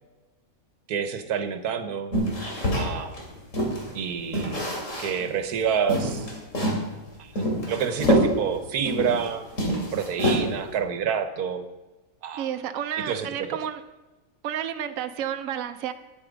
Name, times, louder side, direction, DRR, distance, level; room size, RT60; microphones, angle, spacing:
voice 1, 0.9-2.1 2.7-3.2 3.9-4.7 5.0-6.3 7.2-9.4 9.9-11.6 12.2-12.5 13.0-13.6, right 7 dB, 85° right, 10 dB, 1.4 m, -28 dB
sound 1, 2.1-3.9 4.3-5.3 5.6-5.7 5.9-6.9 7.4-9.3 9.5-10.7, equal, 55° left, 3.1 m, -25 dB
voice 2, 12.4-13.8 14.4-15.9, right 9 dB, 70° right, 8 dB, 1.0 m, -31 dB
11.0 x 9.3 x 5.1 m, 1.1 s
omnidirectional pair, 1.6 m